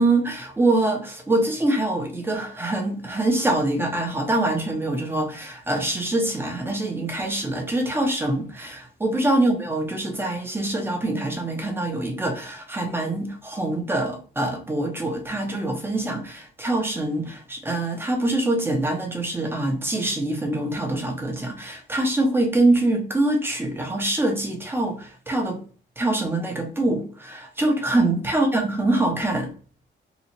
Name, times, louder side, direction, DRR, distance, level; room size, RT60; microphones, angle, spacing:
voice 1, 0.0-25.6 26.0-29.5, right 2 dB, 10° right, 0.8 m, -24 dB
2.9 x 2.4 x 4.2 m
cardioid pair, 145°, 20 cm